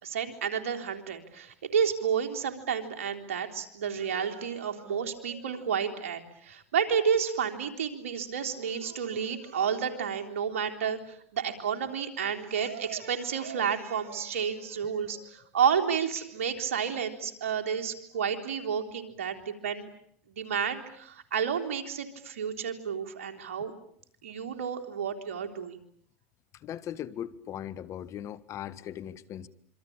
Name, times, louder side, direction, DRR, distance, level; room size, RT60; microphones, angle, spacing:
voice 1, 0.0-19.9 20.4-23.7 24.2-25.8, right 7 dB, 85° right, 4 dB, 3.6 m, -31 dB
voice 2, 26.5-29.5, left 10 dB, 45° left, 17 dB, 1.6 m, -39 dB
26.5 x 25.5 x 8.8 m, 0.64 s
hypercardioid pair, 95°, 7 cm